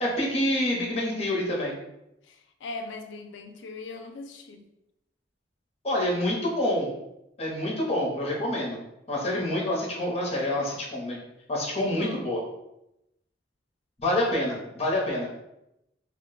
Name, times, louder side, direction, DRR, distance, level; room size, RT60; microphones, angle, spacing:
voice 1, 0.0-1.7 5.8-6.9 7.4-8.8 9.1-11.2 11.5-12.4 14.0-15.3, left 1 dB, 35° left, 0.7 m, -27 dB
voice 2, 2.6-4.7 11.9-12.3, left 3 dB, 85° left, 0.4 m, -39 dB
2.3 x 2.1 x 3.8 m
head